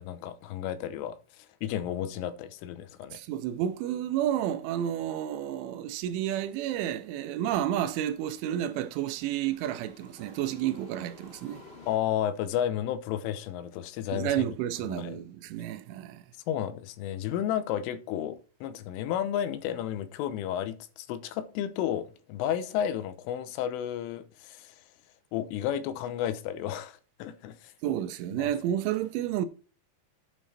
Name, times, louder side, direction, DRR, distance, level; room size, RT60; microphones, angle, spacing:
voice 1, 0.0-3.2 11.9-14.5 14.9-15.2 16.5-24.8 25.3-27.7 28.4-28.5, left 10 dB, 85° left, 3.5 m, -32 dB
voice 2, 3.1-11.6 14.1-16.2 27.8-29.5, right 11 dB, 80° right, 3.1 m, -31 dB
sound 1, 3.4-12.0, left 3 dB, 20° left, 2.1 m, -56 dB
9.0 x 6.9 x 4.3 m
omnidirectional pair, 5.6 m